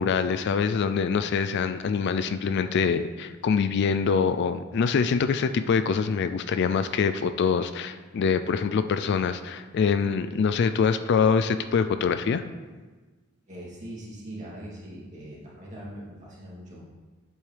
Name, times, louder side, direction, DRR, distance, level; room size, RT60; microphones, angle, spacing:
voice 1, 0.0-12.4, left 6 dB, 55° left, 11 dB, 0.3 m, -24 dB
voice 2, 13.5-16.8, right 1 dB, 35° right, -7 dB, 2.6 m, -41 dB
8.2 x 7.0 x 3.3 m, 1.3 s
head